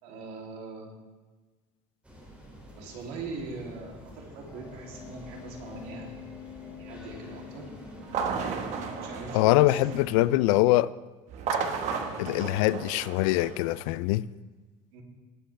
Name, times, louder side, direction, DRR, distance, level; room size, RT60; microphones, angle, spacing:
voice 1, 0.0-1.0 2.8-6.2 6.8-7.7 9.0-10.2 11.8-12.0 14.9-15.0, right 3 dB, 65° right, 0 dB, 2.8 m, -41 dB
sound 1, 2.0-10.3, equal, 5° right, 2.7 m, -47 dB
sound 2, 4.5-11.0, left 8 dB, 20° left, 2.2 m, -48 dB
sound 3, 8.0-10.2 11.3-13.8, right 6 dB, 45° right, 1.3 m, -33 dB
voice 2, 9.3-10.9 12.2-14.3, left 17 dB, 85° left, 19 dB, 0.4 m, -23 dB
19.0 x 8.6 x 3.3 m, 1.3 s
cardioid pair, 155°, 17 cm